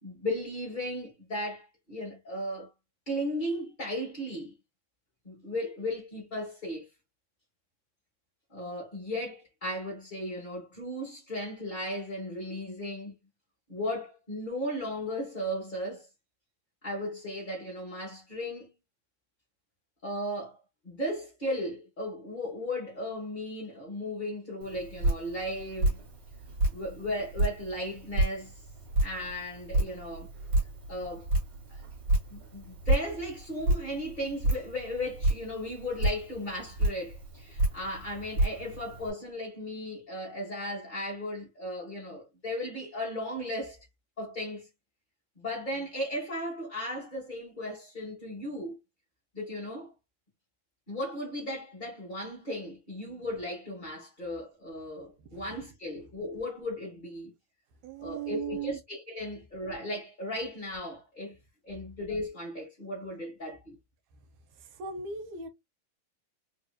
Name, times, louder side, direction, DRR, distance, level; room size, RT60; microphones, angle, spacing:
voice 1, 0.0-2.7 3.1-4.5 5.2-6.8 8.5-13.1 13.7-16.1 16.8-18.7 20.0-20.6 20.8-26.0 26.7-28.5 29.0-30.3 30.9-31.3 31.7-31.8 32.3-43.8 44.2-44.7 45.4-48.8 49.3-49.9 50.9-57.3 58.0-61.4 61.6-63.7, left 1 dB, 30° left, 0.9 m, -36 dB
Drip, 24.6-39.1, right 1 dB, 40° right, 1.9 m, -31 dB
voice 2, 55.2-55.6 57.8-58.8 64.6-65.5, right 6 dB, 75° right, 2.0 m, -38 dB
4.6 x 2.9 x 2.3 m
omnidirectional pair, 3.5 m